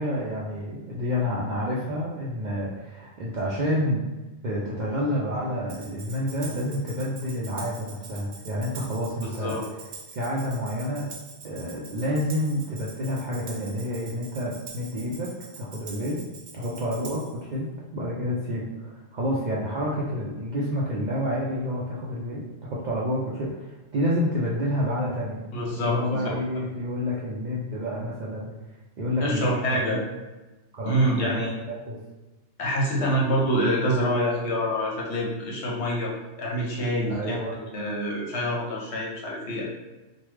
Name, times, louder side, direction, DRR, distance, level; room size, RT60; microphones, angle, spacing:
voice 1, 0.0-4.1 4.4-9.5 10.2-11.1 11.4-15.3 15.6-16.2 16.5-22.4 22.7-25.4 25.8-28.5 29.0-30.0 30.7-32.0 37.1-37.6, equal, 60° right, -5 dB, 0.5 m, -29 dB
Tambourine, 5.7-17.4, right 4 dB, 85° right, 1.0 m, -44 dB
voice 2, 9.2-9.6 25.5-26.3 29.2-30.0 30.8-31.6 32.6-36.1 36.4-39.6, equal, 70° left, -3 dB, 1.1 m, -26 dB
3.2 x 2.2 x 3.1 m, 1.1 s
omnidirectional pair, 1.2 m